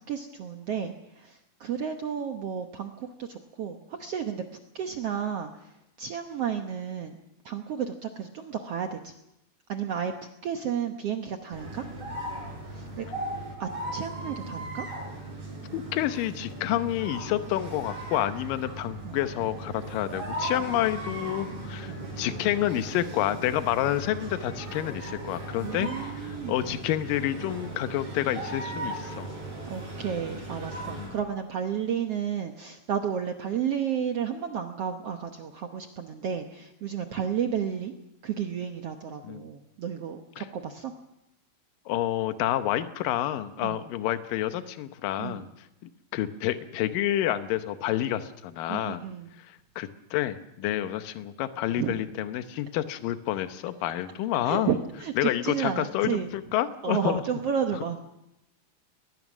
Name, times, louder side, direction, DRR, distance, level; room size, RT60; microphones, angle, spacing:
voice 1, 0.1-4.4 4.7-7.2 7.4-9.1 9.7-10.1 10.4-11.8 12.7-13.1 13.6-14.9 19.0-19.2 21.9-22.1 25.6-26.8 29.6-38.0 38.2-40.9 43.6-43.9 45.2-45.5 48.7-49.3 51.7-52.0 54.4-56.3 56.8-58.0, right 8 dB, 70° right, 5 dB, 1.4 m, -32 dB
sound 1, 11.5-31.2, right 1 dB, 40° right, 8.0 m, -37 dB
voice 2, 15.7-25.9 26.1-29.3 30.9-31.2 39.2-39.4 40.4-40.5 41.9-45.5 46.1-49.0 49.4-54.7 55.2-57.2, left 13 dB, 75° left, 10 dB, 2.5 m, -29 dB
21.0 x 20.0 x 6.2 m, 0.85 s
omnidirectional pair, 4.3 m